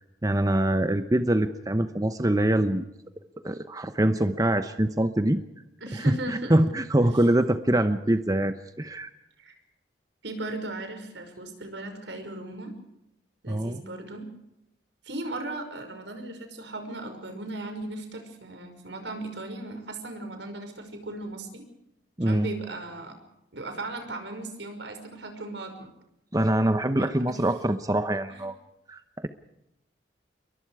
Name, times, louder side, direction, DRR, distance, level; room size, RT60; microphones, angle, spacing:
voice 1, 0.0-2.9 3.4-5.4 5.9-9.1 13.5-13.8 22.2-22.5 26.3-28.5 28.9-29.3, right 1 dB, 20° right, 9 dB, 0.9 m, -24 dB
voice 2, 5.8-6.6 7.0-7.1 9.4-9.5 10.2-12.7 13.4-14.3 15.0-21.6 22.2-23.2 23.5-25.9 27.0-27.4 28.3-28.4, right 2 dB, 80° right, 6 dB, 5.6 m, -37 dB
28.5 x 23.0 x 4.9 m, 0.85 s
head